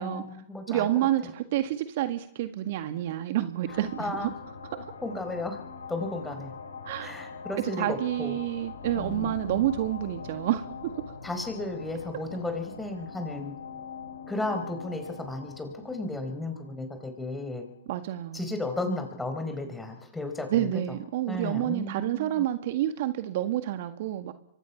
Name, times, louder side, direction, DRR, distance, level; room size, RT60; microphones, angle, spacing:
voice 1, 0.0-1.1 4.0-4.3 5.0-5.6 5.9-6.5 7.0-8.4 8.9-9.7 11.2-13.5 14.3-17.6 18.3-20.8 21.3-22.4, left 2 dB, 5° left, 6 dB, 4.6 m, -34 dB
voice 2, 0.7-4.3 6.8-7.2 7.6-10.9 17.9-18.5 20.5-24.3, right 13 dB, 50° right, 9 dB, 1.7 m, -29 dB
sound 1, 3.6-17.8, left 5 dB, 85° left, 6.0 m, -42 dB
27.0 x 24.0 x 5.8 m, 0.79 s
hypercardioid pair, 130°, 0 cm